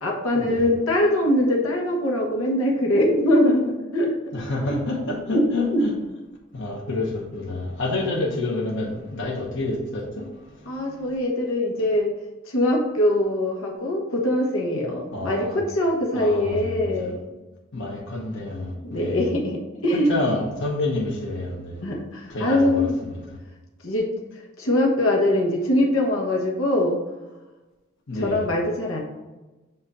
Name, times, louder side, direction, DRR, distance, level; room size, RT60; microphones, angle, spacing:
voice 1, 0.0-4.1 4.7-4.8 5.3-5.4 5.7-5.8 10.7-12.1 12.5-17.2 17.9-18.0 18.8-20.1 21.8-23.0 23.8-24.1 24.6-27.0 28.2-29.0, left 1 dB, 90° left, 0 dB, 1.3 m, -22 dB
voice 2, 4.3-5.9 6.5-10.3 15.1-15.6 16.1-17.1 17.7-19.3 19.9-21.8 22.3-23.2 28.1-28.4, left 2 dB, 65° left, -2 dB, 1.1 m, -28 dB
7.8 x 2.7 x 5.6 m, 1.1 s
head